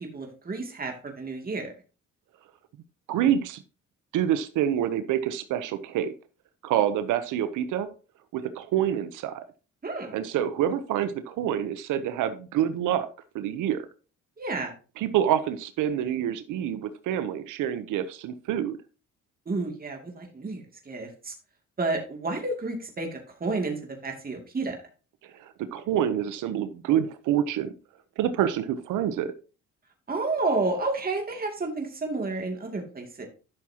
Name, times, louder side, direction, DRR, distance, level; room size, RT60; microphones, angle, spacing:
voice 1, 0.1-1.7 9.8-10.1 14.4-14.7 19.5-21.3 21.8-24.8 30.1-33.3, right 3 dB, 30° right, 2 dB, 2.7 m, -31 dB
voice 2, 3.1-3.6 4.1-6.1 6.6-7.9 8.3-9.4 10.1-13.1 13.3-13.9 15.0-18.8 25.3-27.7 28.2-29.3, right 10 dB, 90° right, 11 dB, 0.9 m, -27 dB
12.0 x 6.3 x 2.9 m, 0.34 s
cardioid pair, 90°, 30 cm